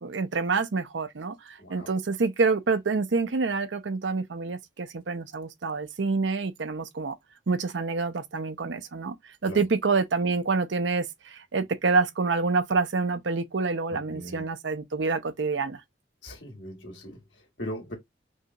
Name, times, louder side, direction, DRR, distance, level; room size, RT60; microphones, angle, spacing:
voice 1, 0.0-7.2 7.5-9.2 9.4-15.8, right 4 dB, 75° right, 0.6 m, -27 dB
voice 2, 1.6-1.9 9.4-9.6 13.9-14.4 16.2-17.9, equal, 80° left, 2.0 m, -40 dB
5.4 x 2.3 x 2.9 m
head